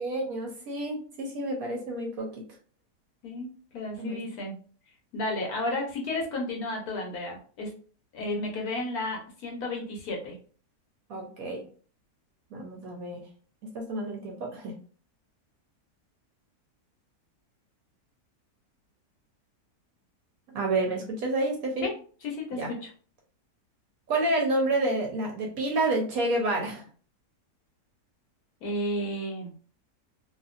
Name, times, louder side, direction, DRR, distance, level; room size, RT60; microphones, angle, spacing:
voice 1, 0.0-2.3 4.0-4.2 11.1-11.6 12.5-13.2 13.7-14.7 20.5-21.9 22.5-22.7 24.1-26.8, right 2 dB, 65° right, 0 dB, 1.0 m, -29 dB
voice 2, 3.2-4.6 5.1-7.7 8.1-10.4 21.8-21.9 22.2-22.9 28.6-29.5, left 1 dB, 65° left, 0 dB, 1.2 m, -32 dB
2.8 x 2.5 x 2.4 m, 0.41 s
omnidirectional pair, 1.8 m